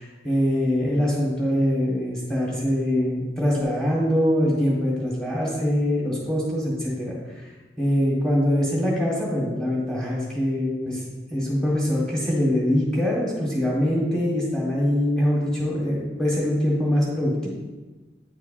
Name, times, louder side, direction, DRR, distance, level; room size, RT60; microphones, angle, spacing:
voice 1, 0.0-7.4 7.8-11.0 11.3-17.5, equal, 5° left, -5 dB, 1.5 m, -23 dB
9.3 x 4.6 x 2.5 m, 1.2 s
head